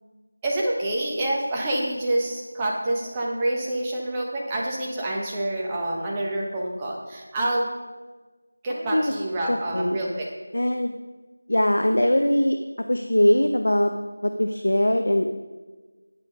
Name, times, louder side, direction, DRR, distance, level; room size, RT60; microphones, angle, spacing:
voice 1, 0.4-7.7 8.6-10.3, right 1 dB, 15° right, -3 dB, 1.1 m, -27 dB
voice 2, 8.8-9.1 9.5-10.0 10.5-10.9 11.5-12.6 12.9-13.9 14.2-15.3, left 1 dB, 75° left, 6 dB, 0.6 m, -21 dB
10.5 x 5.2 x 5.3 m, 1.3 s
figure-of-eight pair, 170°, 0 cm